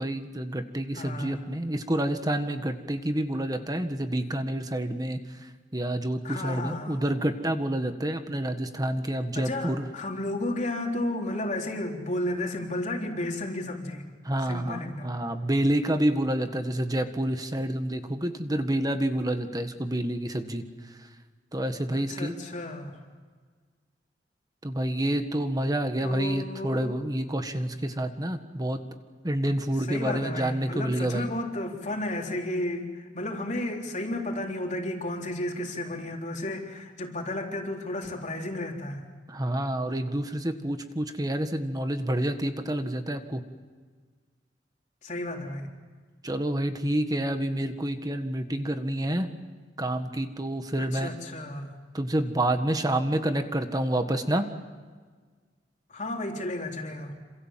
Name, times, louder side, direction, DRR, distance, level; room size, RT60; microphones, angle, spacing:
voice 1, 0.0-9.8 14.2-21.0 21.5-22.3 24.6-28.8 29.2-31.3 39.3-43.4 46.2-49.3 49.8-51.1 51.9-54.5, right 1 dB, 20° right, 7 dB, 1.6 m, -28 dB
voice 2, 1.0-1.4 6.2-7.1 9.3-14.1 14.4-15.2 21.9-23.0 26.0-27.1 29.8-39.0 45.0-45.7 50.8-51.7 55.9-57.2, left 1 dB, 45° left, 1 dB, 3.7 m, -33 dB
27.5 x 27.5 x 7.6 m, 1.5 s
head